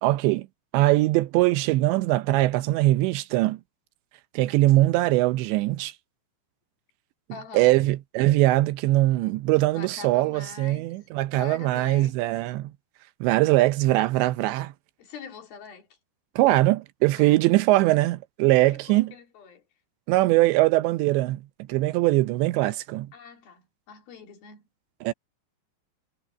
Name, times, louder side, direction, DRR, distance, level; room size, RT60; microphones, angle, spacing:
voice 1, 0.0-0.5 0.7-3.6 4.3-5.9 7.5-12.7 13.2-14.7 16.4-19.1 20.1-21.4 21.7-23.1 25.0-25.1, right 18 dB, 80° right, 2.9 m, -21 dB
voice 2, 7.3-7.7 9.7-10.9 11.3-12.1 15.0-15.9 17.2-17.4 18.6-19.6 23.1-24.7, left 5 dB, 60° left, 4.2 m, -44 dB
omnidirectional pair, 5.2 m